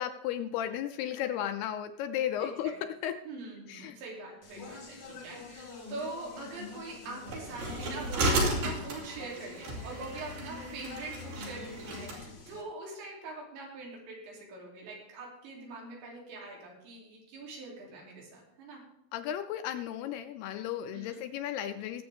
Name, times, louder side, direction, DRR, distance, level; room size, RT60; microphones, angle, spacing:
voice 1, 0.0-3.2 3.7-4.0 19.1-22.0, left 10 dB, 80° left, 8 dB, 2.4 m, -34 dB
voice 2, 3.3-18.8 20.9-21.2, right 3 dB, 90° right, -2 dB, 5.3 m, -43 dB
Speech, 4.4-12.6, left 4 dB, 60° left, 1.1 m, -46 dB
sound 1, 7.3-12.2, right 1 dB, 65° right, 4.3 m, -33 dB
21.0 x 7.9 x 3.5 m, 0.79 s
omnidirectional pair, 5.0 m